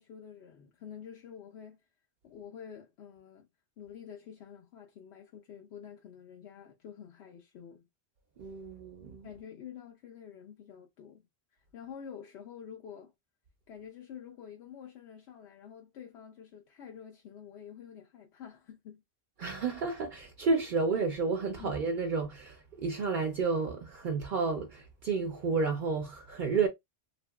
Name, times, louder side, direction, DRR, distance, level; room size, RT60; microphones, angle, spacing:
voice 1, 0.0-1.8 2.2-3.5 3.8-7.9 9.2-11.3 11.7-13.1 13.7-19.0 21.6-21.7, left 8 dB, 90° left, 0.8 m, -48 dB
voice 2, 8.4-9.3 19.4-26.7, right 4 dB, 60° right, 0.6 m, -31 dB
2.7 x 2.5 x 2.2 m
omnidirectional pair, 1.1 m